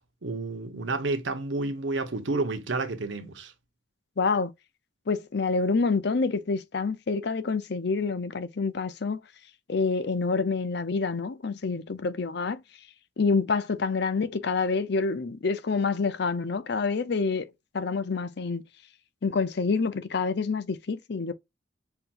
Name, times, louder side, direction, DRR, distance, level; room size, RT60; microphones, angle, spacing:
voice 1, 0.2-3.5, right 3 dB, 80° right, 1.1 m, -30 dB
voice 2, 4.2-4.5 5.1-9.2 9.7-12.6 13.2-17.5 17.7-18.6 19.2-21.3, left 4 dB, 60° left, 0.6 m, -27 dB
5.8 x 2.8 x 2.5 m
head